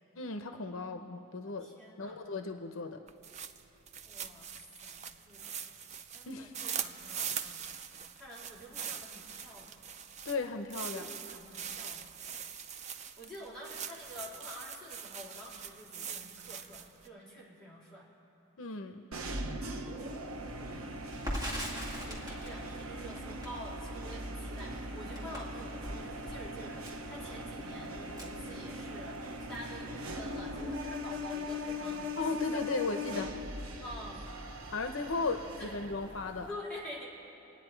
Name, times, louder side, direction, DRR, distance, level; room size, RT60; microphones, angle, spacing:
voice 1, 0.2-1.7 2.0-3.0 6.3-6.5 10.2-11.1 18.6-19.1 32.2-33.3 34.7-36.5, left 3 dB, 70° left, 7 dB, 0.7 m, -36 dB
voice 2, 1.4-2.2 4.0-5.8 6.1-7.7 8.0-9.8 10.9-12.2 13.0-18.1 20.5-21.0 21.7-32.2 32.5-33.3 33.8-34.3 34.9-35.1 35.6-35.7 36.5-37.1, equal, 5° left, -8 dB, 3.4 m, -48 dB
sound 1, 3.1-17.1, right 7 dB, 30° right, 0.4 m, -42 dB
sound 2, 19.1-36.5, left 1 dB, 80° right, 1.0 m, -40 dB
Crackle, 21.1-29.2 29.5-29.7 30.0-30.7, equal, 15° right, 2.1 m, -42 dB
27.0 x 9.7 x 4.5 m, 2.9 s
head